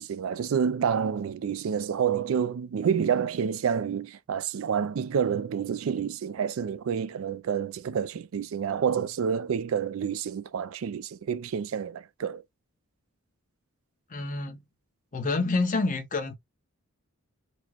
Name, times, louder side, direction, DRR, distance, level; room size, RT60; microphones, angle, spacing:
voice 1, 0.0-12.4, right 7 dB, 70° right, 0.4 m, -28 dB
voice 2, 14.1-14.6 15.1-16.3, left 3 dB, 35° left, 0.7 m, -28 dB
4.2 x 2.1 x 2.9 m
head